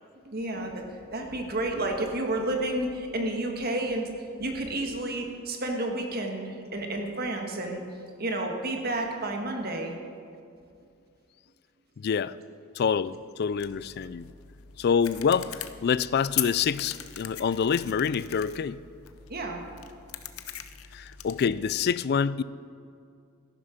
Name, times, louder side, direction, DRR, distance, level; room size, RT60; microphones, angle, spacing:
voice 1, 0.2-4.1 4.4-7.8 8.2-10.0 19.3-19.6, right 1 dB, 45° right, 1.5 m, -31 dB
voice 2, 12.0-12.4 12.7-14.3 14.8-18.8 20.9-22.4, left 6 dB, 50° left, 0.3 m, -26 dB
sound 1, 13.5-21.9, left 11 dB, 75° left, 0.7 m, -40 dB
14.0 x 11.5 x 5.1 m
head